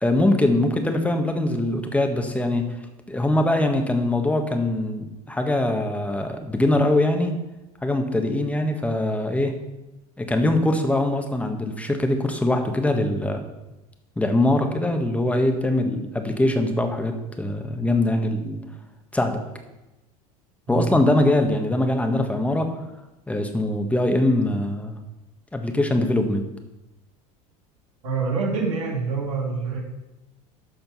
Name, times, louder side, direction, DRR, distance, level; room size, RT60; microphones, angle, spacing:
voice 1, 0.0-2.8 3.1-7.3 7.8-9.6 10.2-13.4 14.2-18.6 19.1-19.4 20.7-22.7 23.3-25.0 25.5-26.5, left 1 dB, 5° left, 5 dB, 1.5 m, -22 dB
voice 2, 28.0-29.8, right 4 dB, 75° right, -3 dB, 2.8 m, -26 dB
12.5 x 4.4 x 5.6 m, 1.0 s
hypercardioid pair, 85°, 19 cm